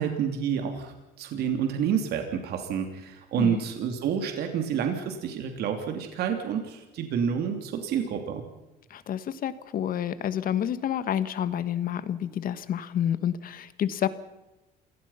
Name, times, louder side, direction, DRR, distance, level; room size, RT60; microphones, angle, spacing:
voice 1, 0.0-8.4, right 7 dB, 70° right, 5 dB, 3.1 m, -29 dB
voice 2, 8.9-14.1, left 10 dB, 55° left, 14 dB, 1.5 m, -29 dB
28.0 x 17.5 x 5.8 m, 1.0 s
cardioid pair, 110°, 17 cm